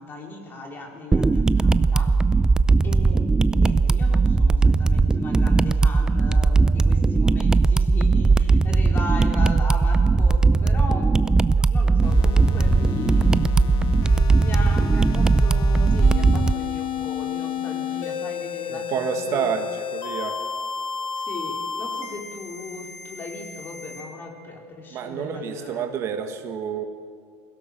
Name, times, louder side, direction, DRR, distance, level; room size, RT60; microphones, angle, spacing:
voice 1, 0.0-2.2 2.8-11.3 11.7-13.5 14.4-19.5 21.1-25.9, left 2 dB, 30° left, 1 dB, 4.1 m, -37 dB
sound 1, 1.1-16.5, right 4 dB, 10° right, 0.5 m, -18 dB
sound 2, 12.0-24.0, left 7 dB, 60° left, 2.5 m, -31 dB
voice 2, 18.7-20.4 24.9-26.8, right 7 dB, 40° right, 6 dB, 1.6 m, -29 dB
22.0 x 17.0 x 7.5 m, 2.2 s
supercardioid pair, 125°, 7 cm